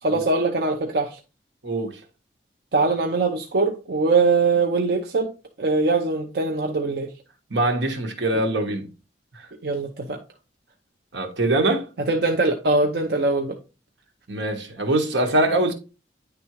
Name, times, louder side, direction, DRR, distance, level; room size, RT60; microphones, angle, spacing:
voice 1, 0.0-1.2 2.7-5.3 5.6-7.1 9.6-10.2 12.0-13.6, right 3 dB, 60° right, 0.7 m, -22 dB
voice 2, 7.5-8.9 11.1-11.9 14.3-15.7, right 2 dB, 85° right, 1.4 m, -23 dB
9.8 x 3.5 x 3.1 m
head